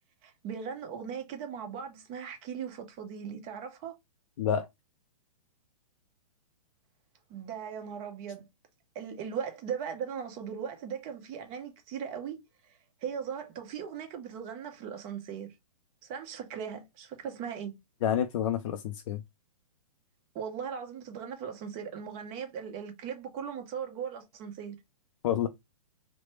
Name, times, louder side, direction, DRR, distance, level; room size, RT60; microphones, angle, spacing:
voice 1, 0.2-3.9 7.3-8.5 8.9-15.5 16.0-17.8 20.3-24.8, right 7 dB, 30° right, 0.7 m, -38 dB
voice 2, 18.0-19.2 25.2-25.5, left 9 dB, 60° left, 0.4 m, -28 dB
3.1 x 2.0 x 3.0 m
hypercardioid pair, 145°, 19 cm